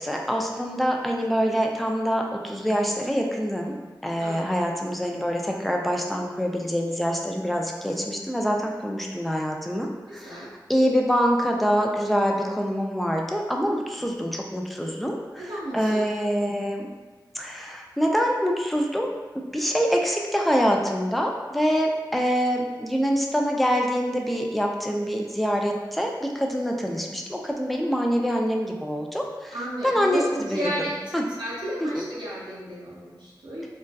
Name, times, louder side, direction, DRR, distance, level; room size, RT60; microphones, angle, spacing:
voice 1, 0.0-3.7 4.0-15.5 15.7-16.9 17.3-19.1 19.5-29.5 29.8-30.7 31.1-31.2 31.8-32.0, equal, ahead, 0 dB, 0.3 m, -25 dB
voice 2, 0.5-0.9 4.2-4.6 10.2-10.5 15.4-16.0 29.5-30.9 31.3-33.6, equal, 75° right, -8 dB, 0.6 m, -33 dB
2.6 x 2.2 x 2.2 m, 1.4 s
wide cardioid pair, 55°, 8 cm